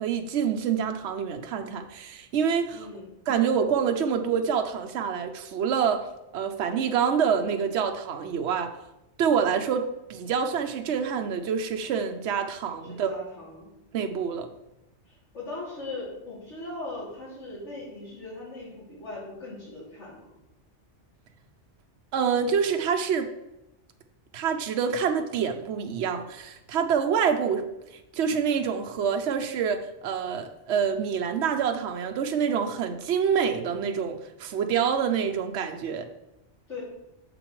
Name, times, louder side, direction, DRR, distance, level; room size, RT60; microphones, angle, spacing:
voice 1, 0.0-2.9 3.3-6.1 6.3-8.7 9.2-13.1 13.9-14.5 22.1-23.3 24.3-27.7 28.1-36.1, right 7 dB, 75° right, 5 dB, 0.9 m, -26 dB
voice 2, 2.7-3.1 12.9-13.7 15.0-20.3 36.7-36.8, left 2 dB, 85° left, -10 dB, 3.0 m, -39 dB
9.0 x 7.0 x 3.1 m, 0.92 s
omnidirectional pair, 1.2 m